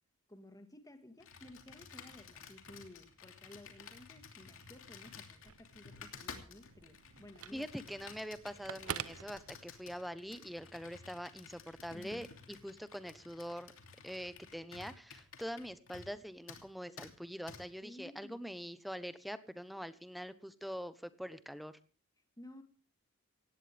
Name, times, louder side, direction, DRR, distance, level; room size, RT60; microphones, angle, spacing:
voice 1, 0.3-7.7 11.9-12.3 17.8-18.4 22.4-22.6, left 1 dB, 15° left, 1.8 m, -55 dB
Computer keyboard, 1.2-16.2 16.5-16.7 17.0-17.1 17.5-17.6, left 5 dB, 65° left, 2.8 m, -53 dB
Telephone, 5.3-10.1, right 8 dB, 85° right, 0.7 m, -47 dB
voice 2, 7.5-13.7 14.0-21.8, equal, ahead, 1.0 m, -44 dB
18.5 x 16.5 x 3.5 m
head